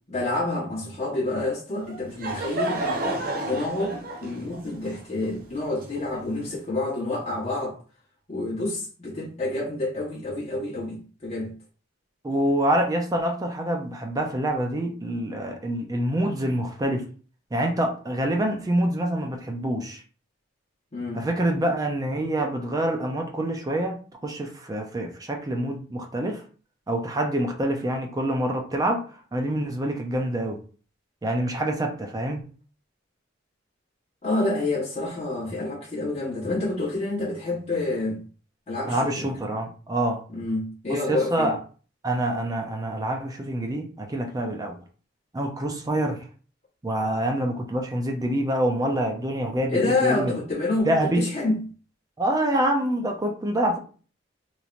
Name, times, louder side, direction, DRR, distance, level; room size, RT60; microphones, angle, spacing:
voice 1, 0.1-2.8 3.4-7.8 8.3-11.5 20.9-21.3 34.2-38.2 38.7-39.3 40.3-41.5 49.7-51.6, left 2 dB, 35° left, 1.0 m, -28 dB
Laughter / Crowd, 1.8-6.5, right 1 dB, 50° right, 0.8 m, -31 dB
voice 2, 12.2-17.1 17.5-20.0 21.1-26.4 26.9-29.0 29.3-30.6 31.2-32.4 38.9-40.2 40.9-41.6 42.0-44.8 45.3-46.2 46.8-50.3 50.8-51.3 52.2-53.8, right 1 dB, 20° right, 0.4 m, -26 dB
3.0 x 2.7 x 2.4 m
head